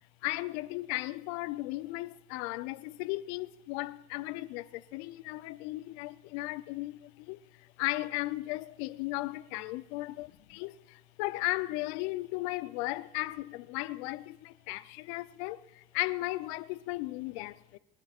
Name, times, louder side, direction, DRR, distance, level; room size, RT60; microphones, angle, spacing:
voice 1, 0.2-4.6 4.9-7.0 7.3-7.4 7.8-10.7 11.2-15.6 15.9-17.8, left 19 dB, 80° left, 0.6 m, -35 dB
27.5 x 12.0 x 2.5 m
supercardioid pair, 80°, 32 cm